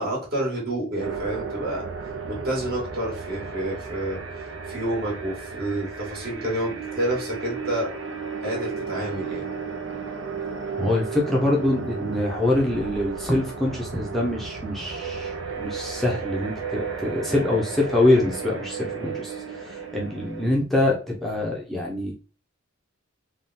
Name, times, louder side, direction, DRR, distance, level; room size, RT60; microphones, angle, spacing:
voice 1, 0.0-1.8 2.3-4.2 4.7-7.9 8.4-9.5 18.9-19.2, right 1 dB, 50° right, -4 dB, 1.9 m, -29 dB
sound 1, 1.0-20.5, right 5 dB, 70° right, 0.7 m, -34 dB
voice 2, 10.8-22.1, left 1 dB, ahead, -3 dB, 0.7 m, -24 dB
3.6 x 2.4 x 4.1 m, 0.36 s
head